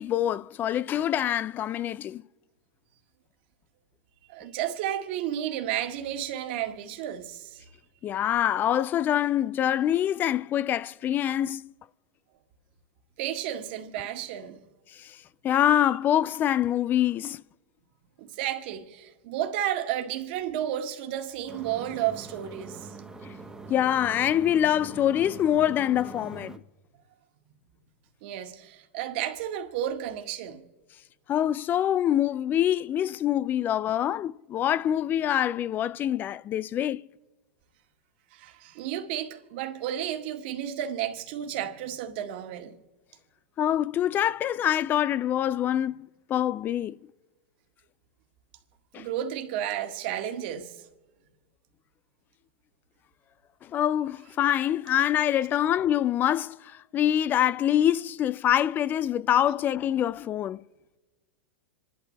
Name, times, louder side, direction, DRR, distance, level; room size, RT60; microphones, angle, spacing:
voice 1, 0.0-2.2 8.0-11.7 15.0-15.2 15.4-17.4 23.7-26.6 31.3-37.0 43.6-46.9 48.9-49.1 53.6-60.6, left 11 dB, 30° left, 0.4 m, -25 dB
voice 2, 4.3-7.6 13.2-14.6 18.2-22.9 28.2-30.6 38.3-42.8 49.0-50.7, right 11 dB, 60° right, 1.8 m, -32 dB
sound 1, 21.5-26.6, right 3 dB, 10° right, 1.3 m, -43 dB
27.0 x 11.5 x 3.3 m
hypercardioid pair, 105°, 6 cm